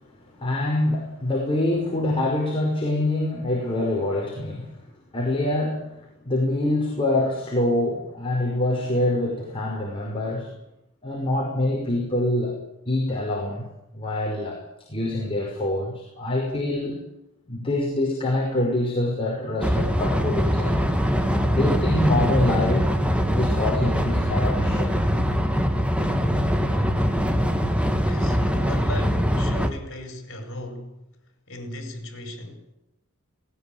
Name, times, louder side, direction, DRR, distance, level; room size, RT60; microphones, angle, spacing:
voice 1, 0.4-4.7 5.1-10.5 11.0-12.6 12.9-13.7 13.9-14.6 14.9-17.0 17.5-20.8 21.5-22.8 23.3-24.9, left 1 dB, 25° left, 5.5 m, -25 dB
sound 1, 19.6-29.7, equal, 5° right, 2.4 m, -22 dB
voice 2, 27.9-31.0 31.5-32.6, left 1 dB, 60° left, 5.1 m, -36 dB
20.0 x 19.0 x 9.0 m
head